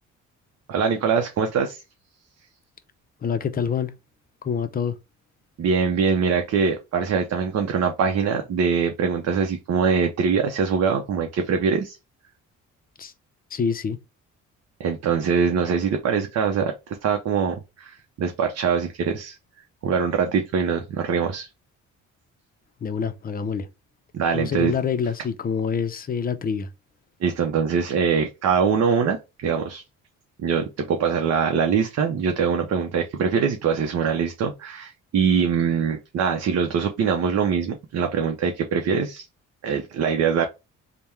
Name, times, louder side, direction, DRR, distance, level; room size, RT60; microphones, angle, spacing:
voice 1, 0.7-1.8 5.6-12.0 14.8-16.7 17.0-19.4 19.8-21.5 24.1-24.7 27.2-29.8 30.4-39.3 39.6-40.5, right 6 dB, 55° right, 0.7 m, -23 dB
voice 2, 3.2-3.9 4.4-5.0 13.0-13.1 13.5-14.0 22.8-23.7 24.3-26.7, left 6 dB, 30° left, 0.5 m, -26 dB
3.4 x 2.2 x 4.4 m
cardioid pair, 90°, 30 cm